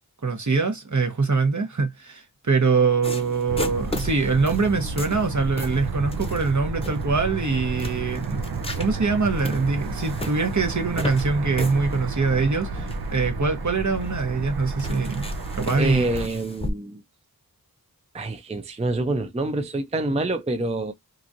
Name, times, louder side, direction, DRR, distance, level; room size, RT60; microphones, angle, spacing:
voice 1, 0.2-8.4 8.8-15.2 15.5-16.1, right 4 dB, 50° right, 1.0 m, -23 dB
sound 1, 3.0-16.7, left 2 dB, 15° left, 0.7 m, -38 dB
sound 2, 3.5-16.3, right 3 dB, 85° right, 0.5 m, -31 dB
voice 2, 15.8-17.0 18.1-20.9, right 2 dB, 20° right, 0.5 m, -26 dB
2.9 x 2.5 x 2.5 m
wide cardioid pair, 40°, 36 cm